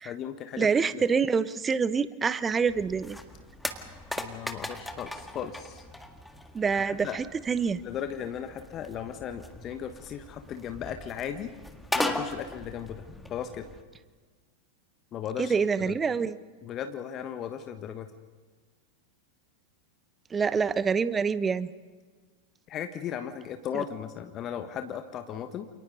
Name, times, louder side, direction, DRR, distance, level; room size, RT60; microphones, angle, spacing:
voice 1, 0.0-1.0 4.2-5.8 6.8-7.2 7.8-11.5 11.9-13.0 13.3-13.7 15.1-15.5 15.8-16.0 16.6-18.1 22.7-25.7, left 9 dB, 30° left, 7 dB, 1.4 m, -36 dB
voice 2, 0.6-3.2 6.5-7.8 15.4-16.4 20.3-21.7, right 5 dB, 15° right, 15 dB, 1.0 m, -26 dB
sound 1, 2.7-13.8, left 1 dB, 5° left, 1.8 m, -38 dB
29.0 x 28.5 x 4.1 m, 1.4 s
figure-of-eight pair, 90°, 0 cm